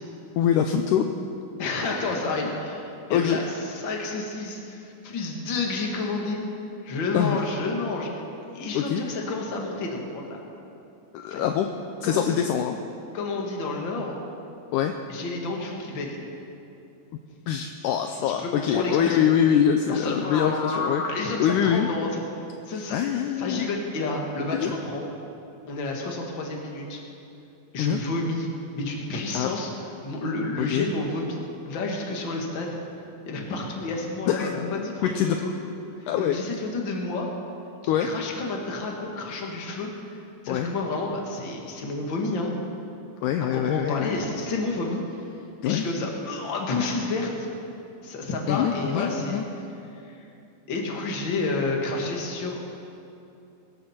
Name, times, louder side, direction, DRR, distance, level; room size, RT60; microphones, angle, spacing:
voice 1, 0.4-1.1 3.1-3.4 7.1-7.4 8.7-9.0 11.1-11.7 12.0-12.8 14.7-14.9 17.5-21.0 21.4-21.9 22.9-23.7 24.5-24.7 27.8-28.0 29.3-29.5 30.6-30.9 34.3-35.4 36.1-36.4 37.9-38.1 40.5-40.7 43.2-44.1 45.6-45.9 48.5-49.4, left 9 dB, 80° left, 6 dB, 1.9 m, -24 dB
voice 2, 1.6-6.4 6.8-8.1 8.5-10.4 11.3-11.4 12.0-12.5 13.1-14.2 15.1-16.2 18.1-19.3 19.9-22.2 22.7-23.0 23.3-25.1 25.7-27.0 27.7-28.5 28.7-29.7 30.0-32.8 33.3-35.5 36.1-37.3 37.8-39.9 40.4-42.5 43.5-45.0 45.6-47.5 48.0-49.4 49.9-50.2 50.7-52.6, left 3 dB, 40° left, 0 dB, 2.0 m, -30 dB
23.0 x 12.5 x 4.4 m, 2.7 s
omnidirectional pair, 4.1 m